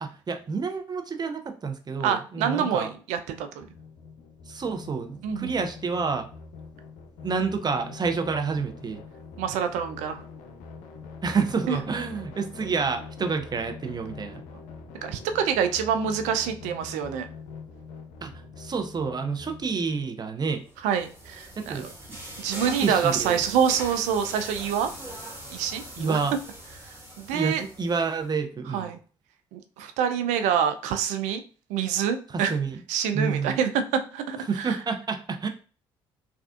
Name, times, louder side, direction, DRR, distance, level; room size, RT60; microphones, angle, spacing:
voice 1, 0.0-2.9 4.5-6.3 7.2-9.0 11.2-14.4 18.2-18.3 18.6-20.6 21.6-21.9 22.6-23.4 26.0-26.3 27.3-28.9 32.5-32.8 33.1-33.6 34.5-35.5, right 5 dB, 35° right, 6 dB, 0.6 m, -29 dB
voice 2, 2.0-3.7 5.2-5.7 9.4-10.2 11.7-11.8 15.0-17.3 20.8-21.9 22.4-24.9 25.5-26.2 26.8-27.6 28.7-29.0 29.5-31.4 31.7-32.6 32.9-34.8, right 8 dB, 75° right, 8 dB, 0.4 m, -26 dB
sound 1, 3.6-20.1, left 4 dB, 75° left, 0.5 m, -44 dB
sound 2, 20.6-28.2, right 1 dB, 20° right, 1.4 m, -41 dB
3.4 x 2.4 x 2.4 m, 0.38 s
hypercardioid pair, 50°, 12 cm